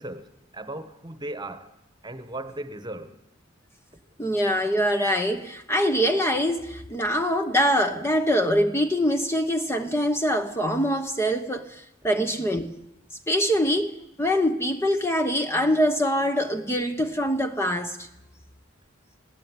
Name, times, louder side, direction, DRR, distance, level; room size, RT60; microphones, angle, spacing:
voice 1, 0.0-1.7 2.0-3.1, right 1 dB, 20° right, 1.4 m, -37 dB
voice 2, 4.2-12.7 13.3-18.0, equal, 15° left, 1.1 m, -24 dB
20.5 x 17.0 x 9.8 m
head